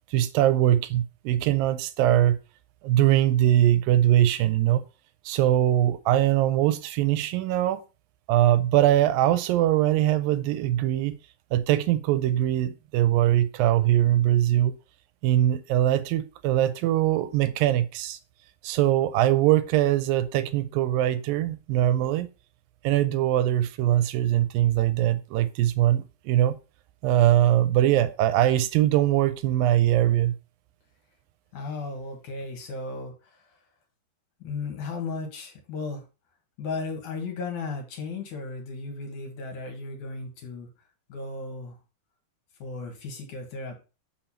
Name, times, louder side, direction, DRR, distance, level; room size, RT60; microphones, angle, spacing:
voice 1, 0.1-2.4 2.8-4.8 5.3-7.8 8.3-11.2 11.5-14.8 15.2-18.2 18.6-22.3 22.8-26.6 27.0-30.4, right 13 dB, 85° right, 2.4 m, -22 dB
voice 2, 31.5-33.6 34.4-36.0 36.6-40.7 41.1-41.8 42.6-43.8, left 3 dB, 65° left, 3.1 m, -35 dB
6.9 x 5.9 x 4.3 m
omnidirectional pair, 4.0 m